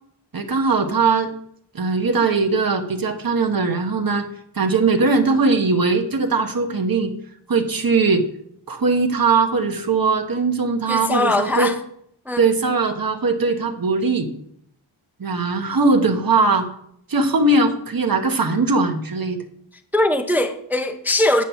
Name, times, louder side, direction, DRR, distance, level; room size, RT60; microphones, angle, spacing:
voice 1, 0.3-1.3 1.7-4.3 4.5-7.1 7.5-8.2 8.7-11.7 12.4-14.3 15.2-16.7 17.1-19.4, right 3 dB, 45° right, 1.2 m, -20 dB
voice 2, 10.9-11.8 12.3-12.4 19.9-21.4, left 2 dB, 5° right, 0.6 m, -20 dB
8.5 x 5.9 x 5.8 m
wide cardioid pair, 100°, 49 cm